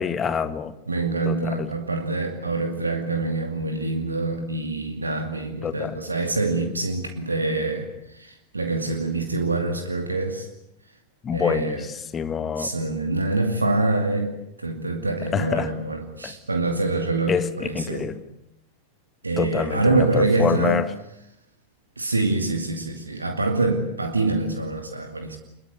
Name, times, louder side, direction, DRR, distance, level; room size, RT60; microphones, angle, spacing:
voice 1, 0.0-0.7 1.2-1.7 5.6-6.0 11.2-11.8 12.1-12.7 15.3-15.7 16.2-16.3 17.3-18.2 19.4-20.9, left 7 dB, 20° left, 12 dB, 1.7 m, -26 dB
voice 2, 0.9-10.5 11.3-11.9 12.6-14.3 14.6-18.1 19.2-20.8 22.0-25.4, right 2 dB, 80° right, 5 dB, 2.4 m, -25 dB
27.0 x 21.5 x 8.3 m, 0.81 s
figure-of-eight pair, 90°, 0 cm